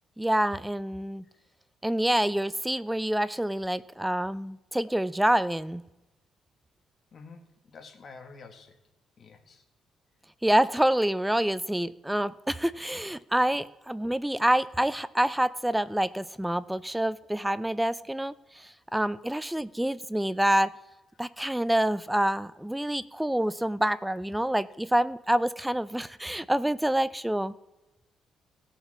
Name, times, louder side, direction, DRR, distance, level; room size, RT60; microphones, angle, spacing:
voice 1, 0.2-1.2 1.8-5.8 10.4-20.7 21.2-27.5, right 1 dB, 5° right, 16 dB, 0.5 m, -27 dB
voice 2, 7.1-8.8 9.2-9.7, left 4 dB, 50° left, 5 dB, 1.8 m, -49 dB
17.5 x 5.8 x 4.3 m, 1.0 s
cardioid pair, 90°, 0 cm